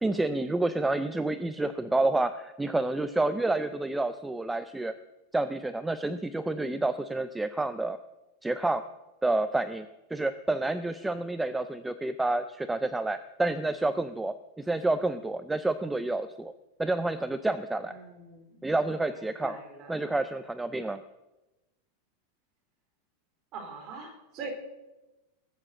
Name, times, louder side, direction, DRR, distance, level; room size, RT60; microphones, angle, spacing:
voice 1, 0.0-4.9 5.3-8.0 8.4-8.8 9.2-9.9 10.1-16.5 16.8-17.9 18.6-19.6 19.9-21.0, right 2 dB, 5° right, 11 dB, 0.4 m, -29 dB
voice 2, 17.8-18.6 19.1-20.1 23.5-24.5, right 4 dB, 30° right, 1 dB, 4.0 m, -43 dB
20.5 x 7.5 x 7.6 m, 1.0 s
supercardioid pair, 175°, 0 cm